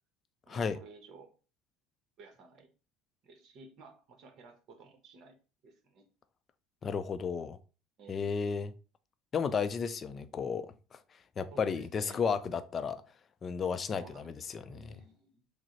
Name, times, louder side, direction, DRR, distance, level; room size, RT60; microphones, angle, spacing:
voice 1, 0.5-1.3 2.2-2.7 3.2-5.4 5.6-6.1 8.0-8.3 11.5-12.2 13.9-15.4, right 4 dB, 55° right, 0.9 m, -54 dB
voice 2, 6.8-7.6 8.1-8.7 9.3-10.7 10.9-11.0 11.4-13.0 13.4-15.0, left 6 dB, 35° left, 0.4 m, -33 dB
5.9 x 2.0 x 2.9 m
supercardioid pair, 95°, 0 cm